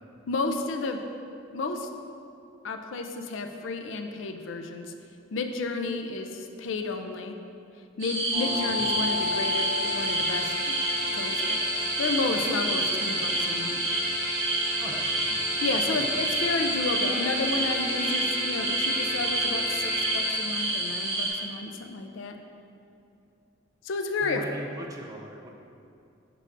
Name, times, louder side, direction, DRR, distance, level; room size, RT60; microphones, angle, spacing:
voice 1, 0.3-1.0 1.5-1.9 2.6-4.9 5.3-7.4 8.0-10.8 11.1-11.4 11.7-13.8 15.6-22.4 23.8-24.4, left 3 dB, 70° left, 6 dB, 0.4 m, -31 dB
sound 1, 8.0-21.3, right 1 dB, 85° right, 1.4 m, -29 dB
sound 2, 8.3-21.4, equal, 45° right, 1.3 m, -32 dB
voice 2, 8.4-8.9 14.8-15.4 15.9-16.3 24.2-25.5, right 1 dB, 15° right, -1 dB, 0.5 m, -41 dB
6.6 x 6.1 x 2.5 m, 2.6 s
head